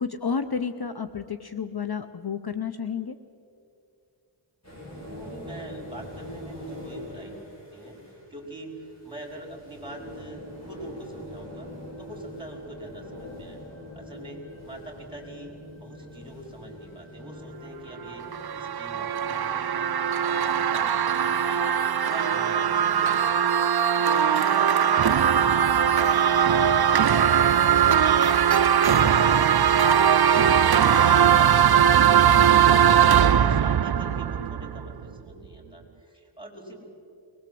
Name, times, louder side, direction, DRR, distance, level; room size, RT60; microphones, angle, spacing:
voice 1, 0.0-3.2, left 6 dB, 50° left, 9 dB, 0.8 m, -31 dB
sound 1, 4.6-23.2, left 1 dB, 35° left, 7.8 m, -44 dB
voice 2, 5.0-11.7 12.0-13.6 13.9-18.2 18.5-19.9 20.3-36.8, right 1 dB, 10° right, 0 dB, 5.1 m, -43 dB
sound 2, 18.1-35.0, right 8 dB, 55° right, 0.5 m, -20 dB
23.0 x 20.0 x 7.8 m, 2.5 s
wide cardioid pair, 55°, 48 cm